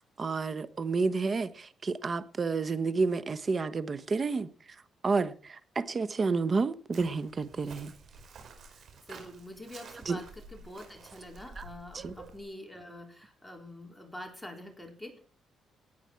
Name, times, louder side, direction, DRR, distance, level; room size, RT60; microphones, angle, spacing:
voice 1, 0.0-4.5 5.0-7.9 10.0-10.2 11.6-11.7 11.9-12.1, right 4 dB, 35° right, 1.1 m, -30 dB
Chirp tweet, 6.9-12.4, right 4 dB, 65° right, 4.9 m, -50 dB
voice 2, 8.7-15.2, left 1 dB, 5° left, 4.0 m, -46 dB
18.5 x 9.2 x 4.5 m
cardioid pair, 90°, 0 cm